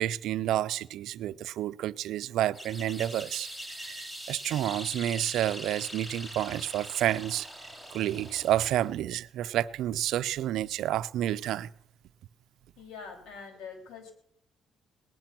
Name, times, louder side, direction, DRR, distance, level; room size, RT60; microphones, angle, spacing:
voice 1, 0.0-7.5 7.9-11.7, right 12 dB, 85° right, 0.5 m, -30 dB
sound 1, 2.5-8.9, equal, 15° left, 4.5 m, -42 dB
voice 2, 12.8-14.1, left 5 dB, 90° left, 3.4 m, -44 dB
19.0 x 10.5 x 6.0 m
cardioid pair, 90°, 0 cm